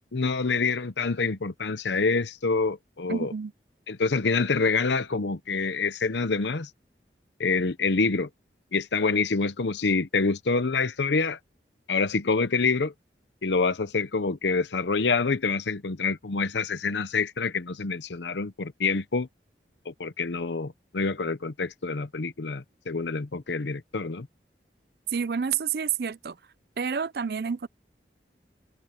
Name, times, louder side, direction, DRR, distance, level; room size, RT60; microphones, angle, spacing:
voice 1, 0.1-3.3 3.9-6.7 7.4-8.3 8.7-11.4 11.9-12.9 13.4-19.3 19.9-24.3, left 4 dB, 90° left, 0.8 m, -26 dB
voice 2, 3.1-3.5 25.1-26.4 26.8-27.7, right 6 dB, 60° right, 0.5 m, -29 dB
head